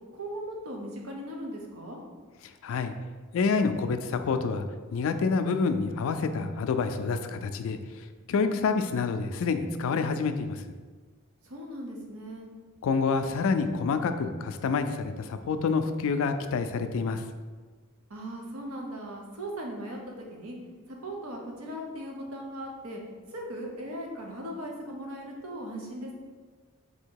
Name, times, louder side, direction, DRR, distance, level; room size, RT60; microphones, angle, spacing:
voice 1, 0.1-2.0 11.4-12.5 18.1-20.6 20.9-23.0 23.3-26.1, right 1 dB, 75° right, 0 dB, 0.8 m, -38 dB
voice 2, 2.4-2.9 3.3-4.6 4.9-10.6 12.8-17.2, left 4 dB, 65° left, 9 dB, 0.3 m, -28 dB
3.6 x 2.8 x 4.5 m, 1.4 s
head